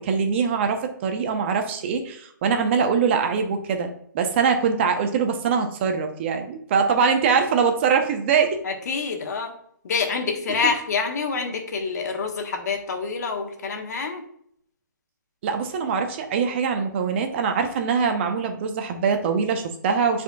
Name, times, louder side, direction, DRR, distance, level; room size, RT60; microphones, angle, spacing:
voice 1, 0.0-3.9 4.1-8.6 15.4-20.2, right 6 dB, 35° right, 6 dB, 0.8 m, -23 dB
voice 2, 8.6-9.5 9.8-14.2, left 5 dB, 55° left, 4 dB, 1.3 m, -27 dB
10.0 x 4.4 x 2.4 m, 0.66 s
hypercardioid pair, 150°, 11 cm